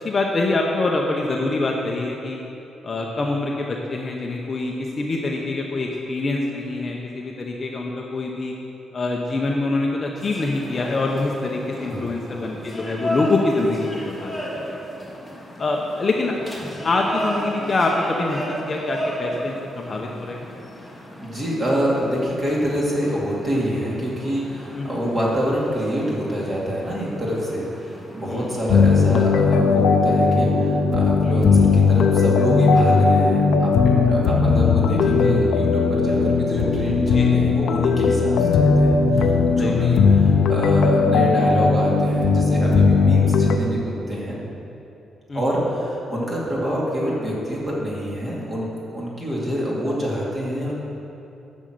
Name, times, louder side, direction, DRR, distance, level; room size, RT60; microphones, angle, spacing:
voice 1, 0.0-2.4 2.8-8.5 8.9-14.8 15.6-16.4 16.8-20.5 24.7-25.0 28.3-28.5 37.1-37.4 39.6-39.9 45.3-45.4, left 2 dB, 25° left, 0 dB, 0.8 m, -25 dB
sound 1, 10.2-29.3, equal, ahead, 1.5 m, -34 dB
voice 2, 11.8-12.1 20.8-27.7 28.1-44.4 45.3-50.7, equal, 20° right, -5 dB, 2.3 m, -26 dB
sound 2, 28.7-43.6, left 4 dB, 70° left, 0.6 m, -17 dB
10.5 x 6.3 x 7.8 m, 2.8 s
wide cardioid pair, 175°, 0 cm